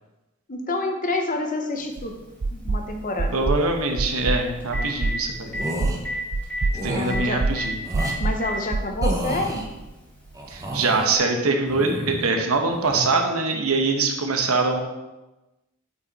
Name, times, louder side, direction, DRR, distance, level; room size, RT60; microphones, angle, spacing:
voice 1, 0.5-2.2 2.5-3.4 6.7-7.4 8.2-9.7, left 2 dB, 40° left, 4 dB, 1.0 m, -28 dB
Telephone, 1.9-2.0 4.2-4.3 4.6-5.1 5.5-5.6 6.0-6.2 6.4-6.6 7.1-7.2 7.6-7.7 8.0-8.5 9.5-9.6 11.1-11.2, left 2 dB, 10° left, 1.8 m, -30 dB
sound 1, 2.0-2.1 2.4-2.8 3.2-3.6 4.0-4.4 4.7-5.2 5.6-6.0 6.3-6.8 7.1-7.6 7.9-8.4 8.7-9.9, right 3 dB, 45° right, 0.4 m, -25 dB
voice 2, 3.3-5.6 6.8-7.8 10.5-14.8, right 3 dB, 80° right, 3 dB, 1.1 m, -23 dB
sound 2, 5.5-6.0 6.7-7.1 7.8-8.2 9.0-9.6 10.3-11.1 11.6-12.3 12.7-13.1, right 1 dB, 15° right, 0.9 m, -31 dB
8.4 x 4.9 x 4.1 m, 1.0 s
head